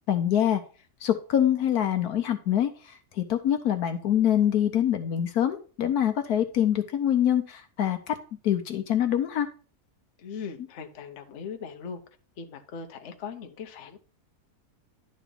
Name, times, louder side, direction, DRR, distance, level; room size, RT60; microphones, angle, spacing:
voice 1, 0.1-0.6 1.0-8.2 8.4-9.5, left 10 dB, 70° left, 1.3 m, -25 dB
voice 2, 10.2-12.0 12.4-14.0, left 6 dB, 50° left, 1.1 m, -39 dB
11.0 x 4.0 x 5.3 m
omnidirectional pair, 1.7 m